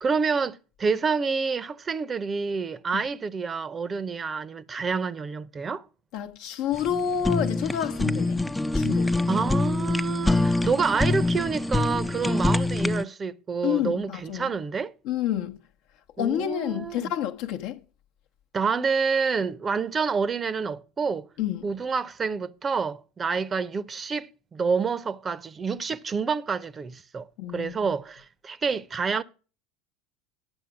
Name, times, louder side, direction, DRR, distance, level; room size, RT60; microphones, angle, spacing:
voice 1, 0.0-5.8 9.3-14.9 16.2-17.1 18.5-21.3 21.6-27.3 27.5-29.2, right 5 dB, 25° right, 0.7 m, -28 dB
voice 2, 6.1-8.4 8.7-9.1 13.6-14.5 15.0-15.6 16.2-17.8 21.4-21.7 27.4-27.9, left 10 dB, 60° left, 0.9 m, -29 dB
Fire, 6.7-13.0, left 2 dB, 10° left, 0.5 m, -25 dB
9.7 x 6.7 x 5.9 m
hypercardioid pair, 75°, 0 cm